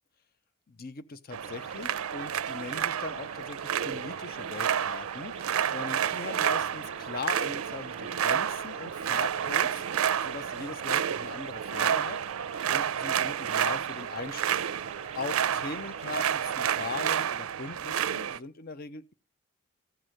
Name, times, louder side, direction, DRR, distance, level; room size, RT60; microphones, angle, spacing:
voice 1, 0.7-12.2 12.7-14.6 15.1-19.1, left 4 dB, 45° left, 0.6 m, -40 dB
sound 1, 1.3-18.4, right 9 dB, 85° right, 0.5 m, -30 dB
sound 2, 1.4-17.2, right 6 dB, 30° right, 0.6 m, -47 dB
sound 3, 6.5-12.6, left 1 dB, 60° left, 6.1 m, -58 dB
14.5 x 6.1 x 6.4 m
head